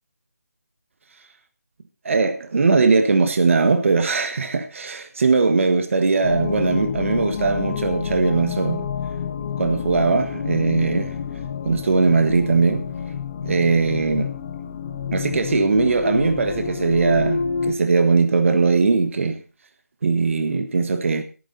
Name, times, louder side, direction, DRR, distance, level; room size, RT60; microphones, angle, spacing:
voice 1, 2.0-8.9 9.6-11.1 11.6-12.8 13.4-14.3 15.1-19.4 20.0-21.2, right 4 dB, 55° right, 1.4 m, -20 dB
sound 1, 6.2-17.7, left 6 dB, 30° left, 1.1 m, -29 dB
22.5 x 9.4 x 2.8 m
figure-of-eight pair, 155°, 8 cm